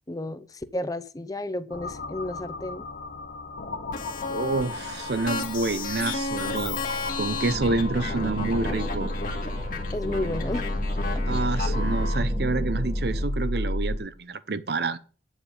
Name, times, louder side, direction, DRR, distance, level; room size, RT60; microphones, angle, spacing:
voice 1, 0.1-2.9 9.9-10.6, left 1 dB, 20° left, 0.6 m, -32 dB
sound 1, 1.7-14.0, left 1 dB, 65° left, 1.1 m, -32 dB
sound 2, 3.9-12.2, left 4 dB, 50° left, 1.8 m, -34 dB
voice 2, 4.3-6.8 7.2-9.1 10.1-10.4 11.3-15.0, right 3 dB, 65° right, 0.7 m, -28 dB
sound 3, 7.5-13.2, right 1 dB, 40° right, 1.6 m, -36 dB
9.1 x 7.2 x 5.4 m
head